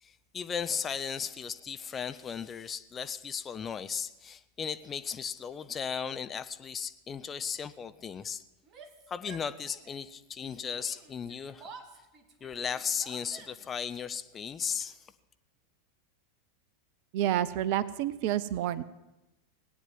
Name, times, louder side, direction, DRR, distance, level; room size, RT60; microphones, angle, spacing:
voice 1, 0.0-8.4 9.1-11.7 12.4-15.1, left 7 dB, 25° left, 12 dB, 0.7 m, -36 dB
Yell, 8.6-10.1 10.4-13.8, right 4 dB, 35° right, 1.8 m, -52 dB
voice 2, 17.1-18.8, right 12 dB, 50° right, 17 dB, 0.7 m, -29 dB
17.5 x 9.3 x 7.6 m, 0.99 s
figure-of-eight pair, 90°, 0 cm